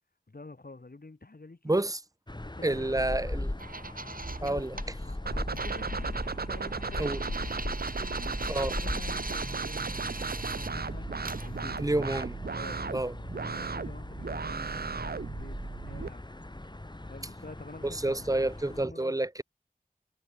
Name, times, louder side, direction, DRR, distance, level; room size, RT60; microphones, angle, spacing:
voice 1, 0.3-1.8 2.6-3.3 4.3-7.3 7.9-8.3 8.8-11.1 11.4-11.8 12.5-12.8 13.4-16.2 17.0-18.4 18.7-19.2, left 3 dB, 75° left, 3.1 m, -48 dB
voice 2, 1.6-2.0 2.6-3.5 4.4-4.7 7.0-7.2 8.5-8.7 11.8-12.4 12.9-13.1 17.8-19.4, right 2 dB, 20° right, 0.7 m, -29 dB
sound 1, 2.3-18.8, left 1 dB, 30° left, 1.7 m, -39 dB
sound 2, 3.6-4.9 5.5-10.7 11.2-11.5, right 3 dB, 65° right, 1.8 m, -41 dB
sound 3, 5.3-16.1, right 5 dB, 85° right, 0.6 m, -36 dB
wide cardioid pair, 45°, 16 cm